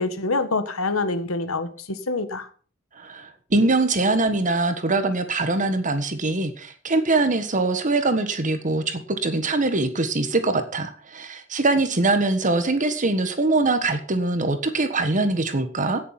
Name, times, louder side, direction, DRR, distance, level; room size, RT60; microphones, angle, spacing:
voice 1, 0.0-2.5, left 3 dB, 90° left, 11 dB, 1.7 m, -26 dB
voice 2, 2.9-16.0, right 2 dB, 40° right, 9 dB, 1.4 m, -23 dB
16.5 x 7.2 x 5.9 m, 0.42 s
head